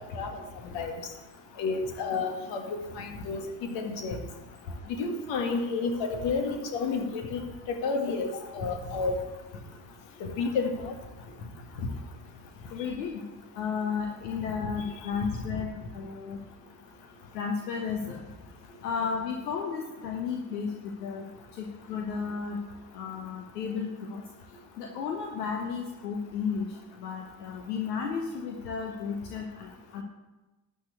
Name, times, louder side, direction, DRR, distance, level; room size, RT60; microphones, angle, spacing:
voice 1, 1.6-3.4 3.7-4.2 5.0-7.4 7.7-9.1 10.2-10.9 14.6-14.7, left 4 dB, 65° left, 4 dB, 1.8 m, -30 dB
voice 2, 12.7-13.3 13.6-16.4 17.3-18.2 18.8-20.7 21.0-21.3 21.5-22.6 22.9-24.2 24.8-26.7 27.0-29.7 29.9-30.0, left 6 dB, 80° left, 2 dB, 1.1 m, -33 dB
12.0 x 4.4 x 8.4 m, 1.1 s
hypercardioid pair, 55°, 48 cm